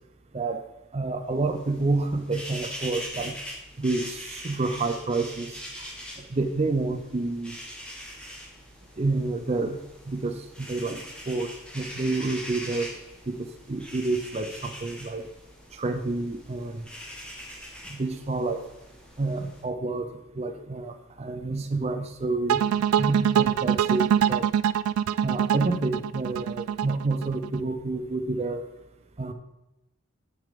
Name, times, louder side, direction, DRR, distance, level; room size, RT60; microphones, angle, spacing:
voice 1, 0.3-0.7 0.9-3.4 3.8-5.6 6.3-7.6 9.0-9.8 10.1-11.0 11.3-12.9 13.3-15.2 15.7-16.8 17.9-18.7 19.2-20.1 20.4-24.5 25.2-28.6 29.2-29.3, right 3 dB, 30° right, 6 dB, 0.5 m, -29 dB
sound 1, 1.3-19.6, equal, 5° left, 1.5 m, -42 dB
sound 2, 22.5-27.6, right 9 dB, 85° right, 0.3 m, -24 dB
6.8 x 6.4 x 5.1 m, 0.91 s
head